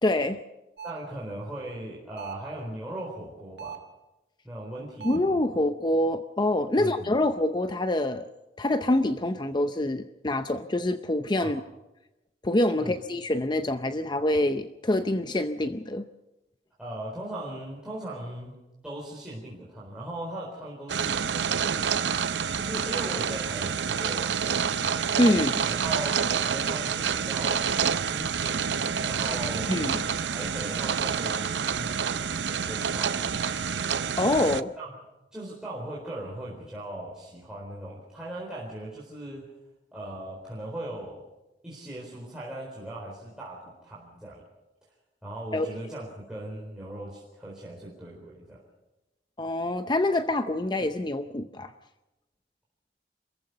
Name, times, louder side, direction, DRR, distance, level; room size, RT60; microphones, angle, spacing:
voice 1, 0.0-0.4 5.0-8.3 8.6-11.6 12.4-16.1 25.2-25.6 29.7-30.0 34.2-34.7 45.5-45.7 49.4-51.7, left 1 dB, 25° left, 9 dB, 0.6 m, -26 dB
voice 2, 0.8-3.8 4.4-5.6 6.8-7.1 11.4-11.6 12.8-13.0 16.8-18.6 18.8-21.8 22.5-25.0 25.8-29.7 30.2-33.4 34.8-34.9 35.3-39.5 39.9-41.2 41.6-44.4 45.2-48.6, right 1 dB, 5° right, -7 dB, 4.2 m, -39 dB
sound 1, 0.8-1.1 2.2-2.5 3.6-4.0 5.0-5.4, right 8 dB, 65° right, 1.7 m, -40 dB
sound 2, 20.9-34.6, right 7 dB, 85° right, 0.6 m, -28 dB
27.0 x 15.0 x 6.7 m, 1.0 s
head